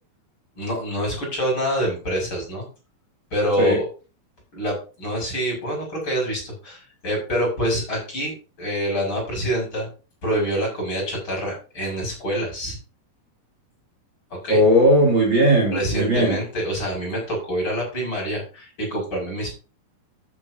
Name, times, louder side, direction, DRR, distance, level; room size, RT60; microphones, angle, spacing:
voice 1, 0.6-2.6 3.3-3.9 4.5-9.9 10.2-12.8 14.4-14.6 15.7-19.5, right 1 dB, 30° left, -2 dB, 6.8 m, -26 dB
voice 2, 14.5-16.4, equal, 35° right, -2 dB, 3.0 m, -17 dB
13.0 x 8.5 x 2.8 m, 0.33 s
omnidirectional pair, 4.2 m